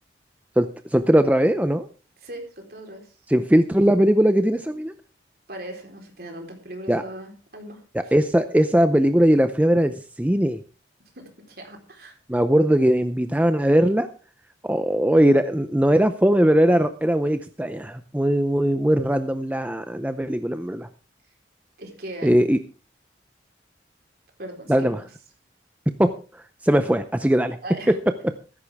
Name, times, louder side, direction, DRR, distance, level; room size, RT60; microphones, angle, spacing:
voice 1, 0.6-1.9 3.3-4.9 6.9-7.0 7.9-10.6 12.3-14.1 14.6-20.9 22.2-22.6 24.7-25.0 26.0-26.1 26.6-27.6 27.9-28.0, equal, 10° right, 9 dB, 0.5 m, -20 dB
voice 2, 2.2-3.2 5.5-8.1 11.1-12.2 21.8-22.3 24.4-25.0 27.6-28.0, right 1 dB, 55° right, 2 dB, 4.0 m, -39 dB
14.5 x 13.5 x 3.5 m, 0.35 s
head